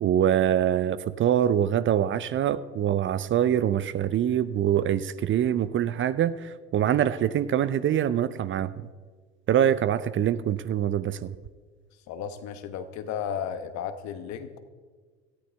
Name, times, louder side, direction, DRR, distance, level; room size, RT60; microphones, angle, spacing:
voice 1, 0.0-8.7 9.5-11.3, right 10 dB, 40° right, 16 dB, 0.6 m, -24 dB
voice 2, 12.1-14.6, left 8 dB, 60° left, 10 dB, 1.2 m, -34 dB
17.0 x 13.5 x 3.5 m, 1.5 s
hypercardioid pair, 65°, 32 cm